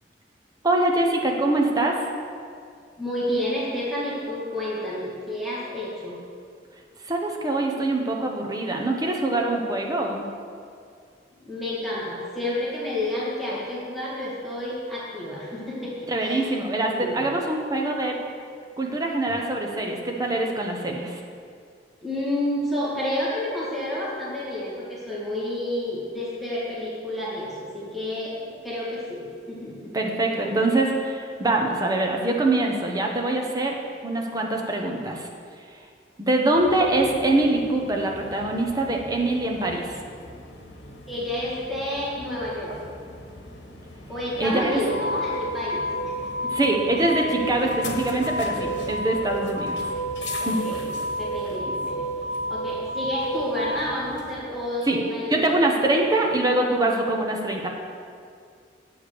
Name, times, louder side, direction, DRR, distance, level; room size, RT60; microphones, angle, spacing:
voice 1, 0.6-2.0 7.0-10.3 16.1-18.1 18.8-21.2 29.9-33.7 34.0-35.3 36.2-39.9 44.4-44.8 46.5-49.9 50.4-50.6 54.9-55.0 55.3-57.7, right 2 dB, 20° right, 1 dB, 1.0 m, -24 dB
voice 2, 3.0-6.2 11.4-17.2 22.0-30.0 41.1-42.8 44.1-46.5 50.3-52.1 52.5-55.5, left 1 dB, ahead, -8 dB, 2.0 m, -30 dB
sound 1, 36.5-54.3, equal, 80° left, 1.2 m, -32 dB
8.4 x 5.0 x 6.9 m, 2.3 s
head